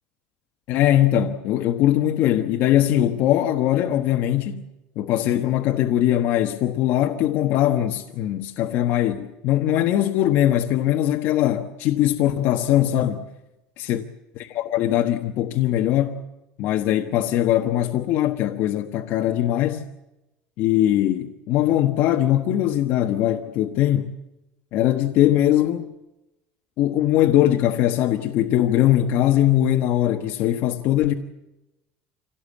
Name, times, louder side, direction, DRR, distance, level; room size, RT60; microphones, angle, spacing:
voice 1, 0.7-4.6 5.0-13.2 13.8-14.0 14.3-16.2 16.6-19.8 20.6-24.1 24.7-25.9 26.8-31.1, left 12 dB, 55° left, 1.3 m, -21 dB
26.0 x 18.0 x 8.5 m
cardioid pair, 160°, 4 cm